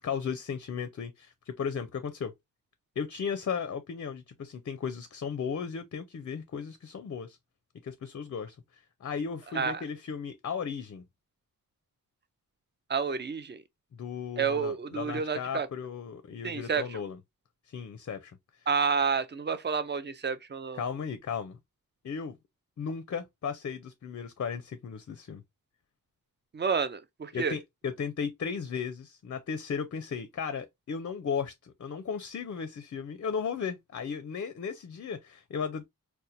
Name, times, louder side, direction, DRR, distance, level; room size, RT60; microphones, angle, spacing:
voice 1, 0.0-2.3 3.0-7.4 7.8-11.0 13.9-17.2 17.7-18.4 20.7-21.6 22.0-22.4 22.8-25.4 27.3-35.9, left 6 dB, 45° left, 0.4 m, -35 dB
voice 2, 12.9-13.6 14.4-15.7 16.4-17.0 18.7-20.8 26.5-27.6, right 6 dB, 30° right, 0.4 m, -30 dB
4.2 x 2.2 x 2.5 m
wide cardioid pair, 125°, 35 cm